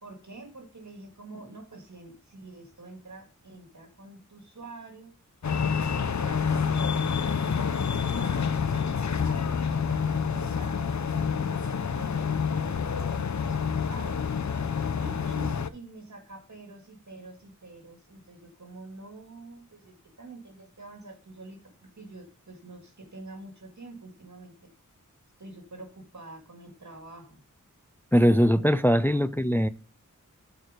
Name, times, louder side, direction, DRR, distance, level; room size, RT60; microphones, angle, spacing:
voice 1, 0.0-5.1 5.6-8.5 9.2-14.3 15.0-24.7 25.4-27.4, right 2 dB, 60° right, 2.1 m, -47 dB
sound 1, 5.4-15.7, left 6 dB, 60° left, 0.6 m, -28 dB
voice 2, 28.1-29.7, equal, 5° left, 0.4 m, -21 dB
9.1 x 4.7 x 4.9 m
wide cardioid pair, 70°, 32 cm